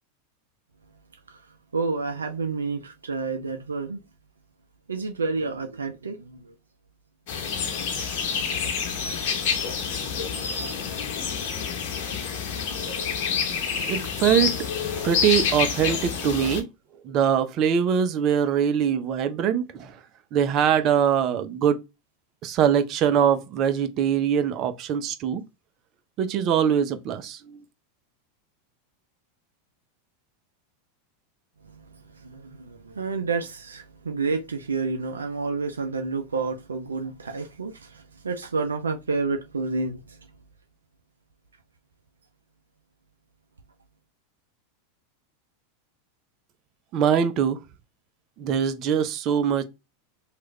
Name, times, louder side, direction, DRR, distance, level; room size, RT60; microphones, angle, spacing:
voice 1, 1.7-4.0 4.9-6.5 7.3-7.6 31.6-40.2, right 4 dB, 90° right, 0.4 m, -30 dB
sound 1, 7.3-16.6, left 6 dB, 60° left, 1.0 m, -28 dB
voice 2, 13.9-14.6 14.9-16.7 17.0-20.0 20.3-21.8 22.4-25.4 26.2-27.6 46.9-47.6 48.4-49.6, right 8 dB, 45° right, 0.6 m, -23 dB
3.1 x 2.4 x 3.1 m
hypercardioid pair, 95°, 0 cm